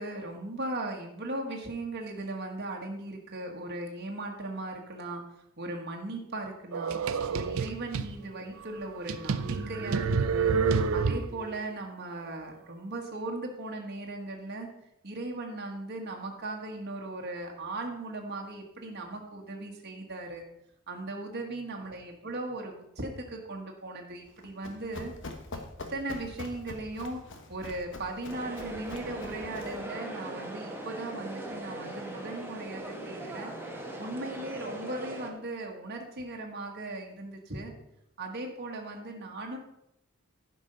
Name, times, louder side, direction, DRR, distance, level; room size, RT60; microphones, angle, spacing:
voice 1, 0.0-5.2 5.6-7.0 7.3-10.5 10.9-14.7 15.0-20.4 20.9-25.1 25.9-27.2 27.5-33.5 34.0-37.7 38.2-39.6, right 2 dB, 50° right, 1 dB, 1.4 m, -38 dB
sound 1, 6.7-8.1 8.6-8.7 9.1-11.5, right 5 dB, 75° right, 0.5 m, -28 dB
Run, 24.3-29.8, left 2 dB, 60° left, 1.3 m, -44 dB
sound 2, 28.3-35.3, right 1 dB, 10° right, 1.4 m, -40 dB
11.5 x 5.4 x 5.4 m, 0.80 s
head